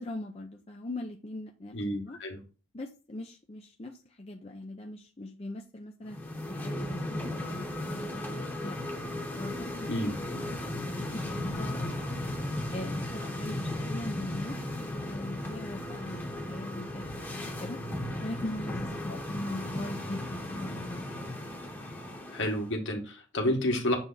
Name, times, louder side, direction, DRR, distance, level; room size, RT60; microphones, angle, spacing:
voice 1, 0.0-2.2 2.7-6.2 6.5-8.8 9.3-11.9 12.7-17.1 17.3-17.8 18.2-21.1, left 1 dB, 30° left, 0.6 m, -40 dB
voice 2, 1.7-2.4 9.9-10.1 22.3-24.0, left 1 dB, 60° left, 1.7 m, -30 dB
sound 1, 6.1-22.7, left 1 dB, 10° left, 1.1 m, -36 dB
7.1 x 3.5 x 4.1 m
head